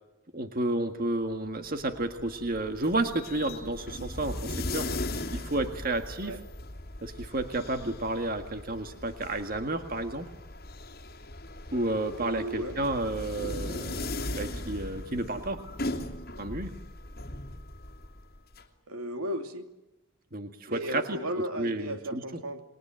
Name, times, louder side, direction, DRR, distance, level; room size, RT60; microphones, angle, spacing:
voice 1, 0.3-4.9 5.3-6.3 7.0-10.3 11.7-15.6 16.4-16.7 20.3-21.2 21.6-22.2, right 2 dB, 40° right, 7 dB, 1.8 m, -31 dB
sound 1, 1.6-18.6, left 2 dB, 45° left, 2.8 m, -38 dB
voice 2, 12.2-12.8 18.9-19.7 20.7-22.6, equal, 90° right, 6 dB, 2.9 m, -35 dB
28.5 x 22.0 x 9.2 m, 0.97 s
head